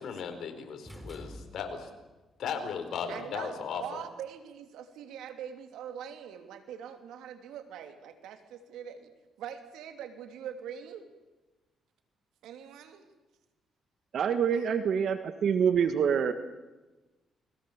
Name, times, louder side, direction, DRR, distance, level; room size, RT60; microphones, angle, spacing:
voice 1, 0.0-1.9 2.4-3.8, left 6 dB, 70° left, 6 dB, 4.6 m, -36 dB
sound 1, 0.9-2.1, equal, ahead, 3.8 m, -46 dB
voice 2, 3.1-9.1 9.4-11.1 12.4-13.1 14.5-14.7, right 9 dB, 85° right, 7 dB, 2.9 m, -43 dB
voice 3, 14.1-16.3, right 7 dB, 65° right, 9 dB, 1.5 m, -26 dB
29.5 x 21.5 x 7.3 m, 1.2 s
cardioid pair, 90°, 0 cm